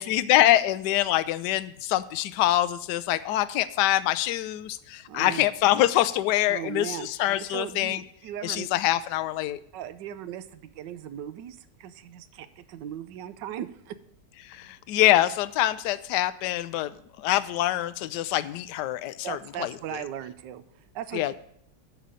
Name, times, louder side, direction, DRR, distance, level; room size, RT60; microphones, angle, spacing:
voice 1, 0.0-8.0 8.4-9.6 14.4-20.0 21.1-21.3, left 14 dB, 75° left, 14 dB, 1.1 m, -25 dB
voice 2, 5.1-5.4 6.5-7.1 7.5-8.7 9.7-14.0 19.2-21.3, right 10 dB, 80° right, 12 dB, 1.3 m, -38 dB
11.5 x 4.1 x 7.6 m, 0.69 s
omnidirectional pair, 1.9 m